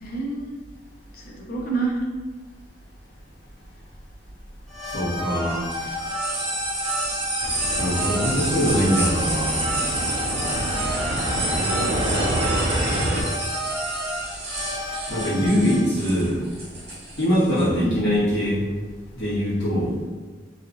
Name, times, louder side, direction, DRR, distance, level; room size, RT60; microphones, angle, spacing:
voice 1, 0.0-0.6 1.1-2.0 11.4-12.0 17.8-18.1, right 3 dB, 55° left, -2 dB, 0.7 m, -29 dB
sound 1, 4.7-15.8, equal, ahead, 1.3 m, -31 dB
voice 2, 4.8-5.7 7.8-9.6 15.1-16.4 17.2-18.6 19.1-20.0, equal, 75° left, -10 dB, 1.4 m, -22 dB
sound 2, 5.7-17.7, right 2 dB, 35° right, 1.0 m, -30 dB
Fixed-wing aircraft airplane, 7.4-13.2, right 1 dB, 85° right, 0.5 m, -27 dB
3.1 x 3.0 x 2.5 m, 1.4 s
head